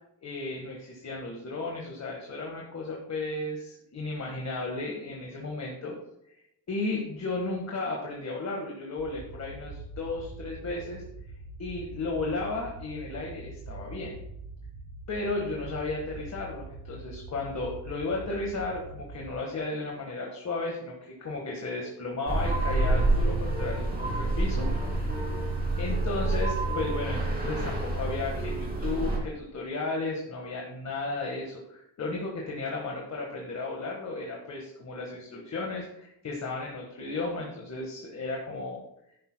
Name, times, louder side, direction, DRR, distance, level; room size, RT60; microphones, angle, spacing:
voice 1, 0.2-5.9 6.7-11.0 11.6-14.1 15.1-24.7 25.8-38.8, left 3 dB, 35° left, -1 dB, 1.5 m, -34 dB
sound 1, 9.0-19.3, right 2 dB, 85° right, 3.8 m, -43 dB
sound 2, 22.3-29.2, right 2 dB, 20° right, 2.4 m, -28 dB
11.0 x 10.0 x 2.2 m, 0.80 s
wide cardioid pair, 160°, 44 cm